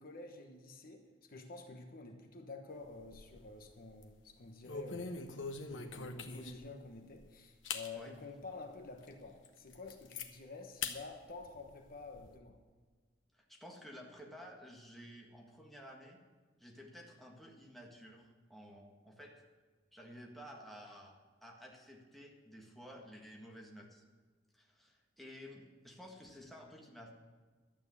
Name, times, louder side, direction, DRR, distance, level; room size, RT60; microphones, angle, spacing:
voice 1, 0.0-5.2 5.7-12.5, left 3 dB, 50° left, 4 dB, 1.2 m, -50 dB
sound 1, 2.8-3.5 3.9-4.1 4.6-6.7 7.2-7.3 7.6-7.9 8.4-8.5 9.0-9.1 9.4-10.3 10.8-11.0 11.4-12.3, left 5 dB, 85° left, 1.1 m, -43 dB
voice 2, 13.3-16.2 16.6-19.4 19.9-21.2 21.4-24.0 24.5-27.1, equal, ahead, -1 dB, 1.7 m, -53 dB
12.5 x 8.9 x 7.1 m, 1.4 s
head